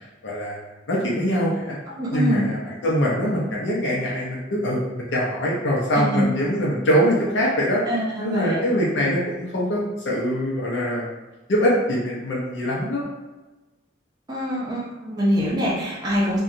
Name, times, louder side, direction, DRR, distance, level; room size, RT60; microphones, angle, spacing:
voice 1, 0.2-1.8 2.1-7.8 8.2-11.1 11.5-13.1, equal, 80° left, -4 dB, 0.6 m, -23 dB
voice 2, 2.0-2.4 5.9-6.3 7.9-8.6 14.3-16.4, equal, 20° right, -6 dB, 0.5 m, -24 dB
2.8 x 2.2 x 2.5 m, 1.1 s
head